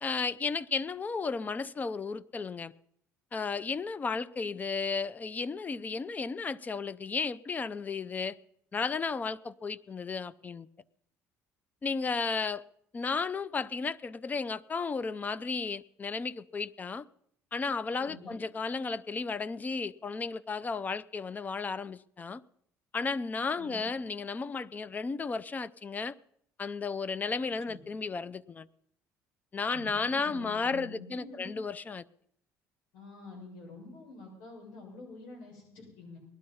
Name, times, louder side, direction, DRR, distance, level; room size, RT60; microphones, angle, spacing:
voice 1, 0.0-2.7 3.3-8.4 8.7-10.7 11.8-12.6 12.9-17.1 17.5-22.4 22.9-26.1 26.6-28.7 29.5-32.0, left 4 dB, 25° left, 19 dB, 0.6 m, -34 dB
voice 2, 18.0-18.4 23.5-23.9 27.7-27.8 29.7-31.5 32.9-36.2, left 3 dB, 80° left, 0 dB, 6.5 m, -47 dB
19.0 x 12.0 x 5.5 m, 0.69 s
cardioid pair, 100°, 6 cm